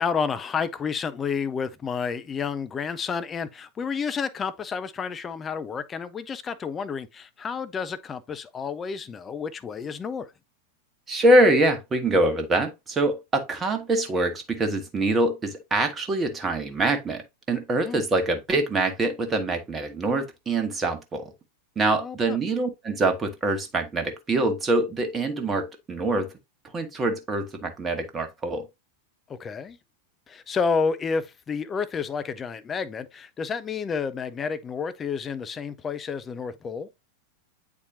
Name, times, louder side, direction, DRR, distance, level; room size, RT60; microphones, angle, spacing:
voice 1, 0.0-10.3 17.8-18.0 22.0-22.4 29.3-29.8 30.3-36.9, left 5 dB, 20° left, 0.6 m, -30 dB
voice 2, 11.1-21.3 21.7-26.3 26.7-28.7, right 2 dB, 20° right, 1.3 m, -24 dB
8.4 x 4.3 x 2.7 m
figure-of-eight pair, 90°, 0 cm